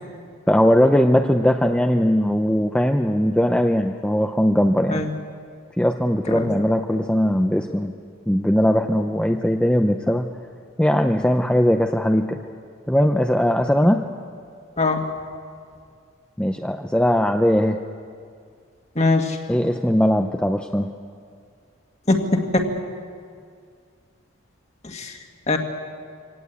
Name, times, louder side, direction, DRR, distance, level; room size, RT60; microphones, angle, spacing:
voice 1, 0.5-5.0 5.8-7.9 8.3-10.3 10.8-12.4 12.9-14.0 16.4-17.8 19.5-20.9, equal, 5° left, 4 dB, 0.6 m, -19 dB
voice 2, 19.0-19.4 22.1-22.2 22.5-22.7 24.8-25.1 25.5-25.6, left 2 dB, 35° left, 4 dB, 1.8 m, -21 dB
24.5 x 18.0 x 8.4 m, 2.2 s
head